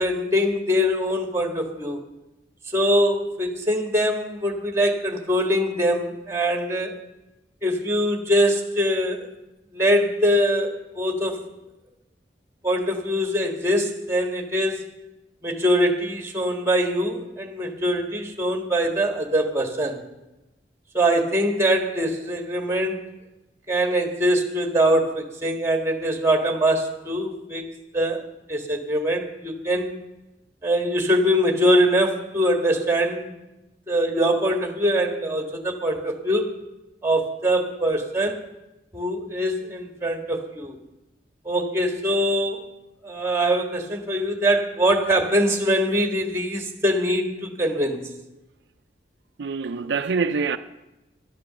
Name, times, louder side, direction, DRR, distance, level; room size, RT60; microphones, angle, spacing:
voice 1, 0.0-2.0 2.7-6.9 7.6-9.3 9.7-11.4 12.6-14.8 15.4-20.0 20.9-23.0 23.7-27.6 27.9-28.2 28.5-29.9 30.6-33.3 33.9-36.5 37.0-38.4 38.9-40.8 41.4-42.7 43.0-48.0, equal, 15° right, 1.6 m, -23 dB
voice 2, 49.4-50.6, right 5 dB, 75° right, 0.5 m, -25 dB
11.5 x 11.0 x 6.8 m
head